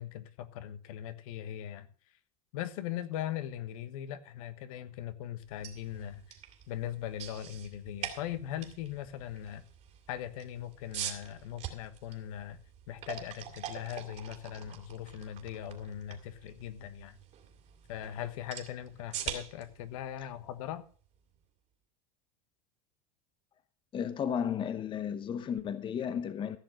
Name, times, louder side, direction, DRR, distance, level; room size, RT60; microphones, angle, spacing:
voice 1, 0.0-1.9 2.5-6.2 6.7-9.6 10.1-12.6 12.9-17.2 17.9-20.8, left 11 dB, 70° left, 1.3 m, -40 dB
sound 1, 5.4-21.4, right 9 dB, 40° right, 2.6 m, -45 dB
voice 2, 23.9-26.6, left 8 dB, 25° left, 0.9 m, -33 dB
15.0 x 6.7 x 6.2 m
supercardioid pair, 120°, 18 cm